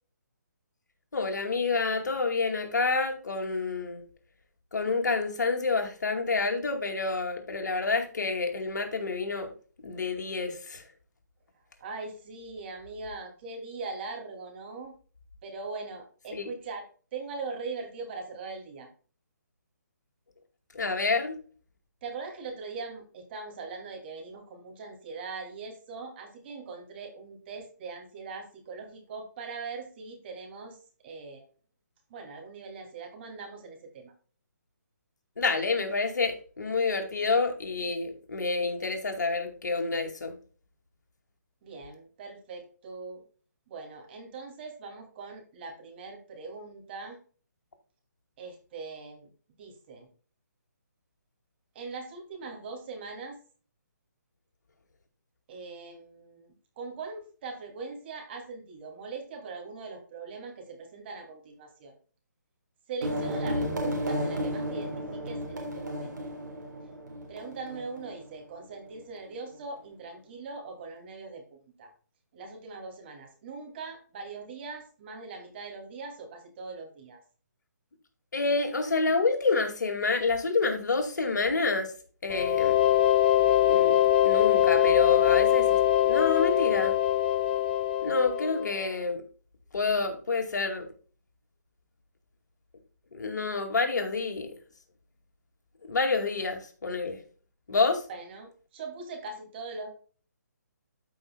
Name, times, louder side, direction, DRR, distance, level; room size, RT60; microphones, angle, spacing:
voice 1, 1.1-4.0 4.7-9.5 9.8-10.8 16.3-16.5 20.7-21.4 35.4-40.4 78.3-81.9 82.2-82.8 83.6-85.8 86.0-87.0 88.0-89.2 89.7-90.9 93.1-94.5 95.8-97.2 97.7-98.0, left 4 dB, 70° left, 2.2 m, -28 dB
voice 2, 11.8-14.9 15.4-16.8 17.1-18.9 22.0-30.8 31.0-31.5 32.1-34.1 41.6-43.2 43.7-47.2 48.4-49.3 49.6-50.1 51.7-53.4 55.5-61.9 62.9-66.4 67.3-71.9 72.3-77.2 98.1-99.9, right 4 dB, 35° right, 2.7 m, -41 dB
sound 1, 63.0-68.4, equal, 80° right, 3.5 m, -33 dB
sound 2, 82.3-88.9, left 12 dB, 30° left, 0.6 m, -23 dB
13.5 x 5.3 x 2.3 m
hypercardioid pair, 150°, 10 cm